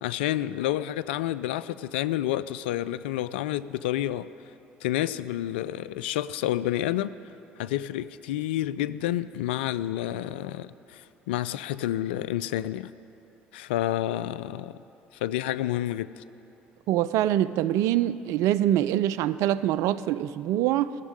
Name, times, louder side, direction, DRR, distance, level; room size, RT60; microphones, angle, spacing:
voice 1, 0.0-4.3 4.8-7.1 7.6-12.9 13.5-14.8 15.2-16.2, left 13 dB, 80° left, 16 dB, 0.3 m, -29 dB
voice 2, 16.9-21.0, right 12 dB, 65° right, 16 dB, 0.4 m, -24 dB
15.0 x 7.2 x 9.8 m, 2.9 s
hypercardioid pair, 60°, 6 cm